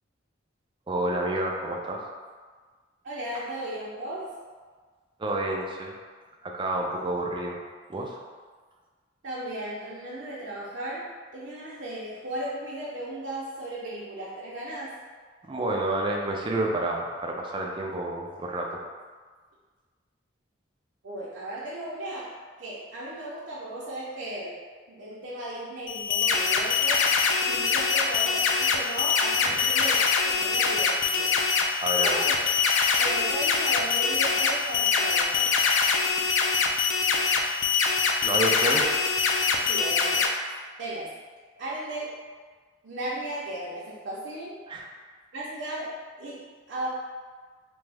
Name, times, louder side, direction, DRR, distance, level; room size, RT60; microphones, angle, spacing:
voice 1, 0.9-2.0 5.2-5.9 6.4-7.6 7.9-8.2 15.4-18.8 29.4-29.8 31.8-32.2 38.2-39.0 44.7-44.9, right 1 dB, 25° right, -1 dB, 0.4 m, -29 dB
voice 2, 3.0-4.3 9.2-11.0 11.3-14.9 21.0-22.3 22.6-24.6 24.9-27.1 27.4-31.3 32.0-32.3 33.0-35.6 39.7-40.3 40.8-41.1 41.6-42.2 42.8-44.5 45.3-45.9 46.2-46.9, right 1 dB, 75° right, -8 dB, 0.6 m, -36 dB
sound 1, 25.9-40.3, left 5 dB, 80° left, 0.3 m, -24 dB
3.4 x 2.0 x 3.3 m, 1.5 s
head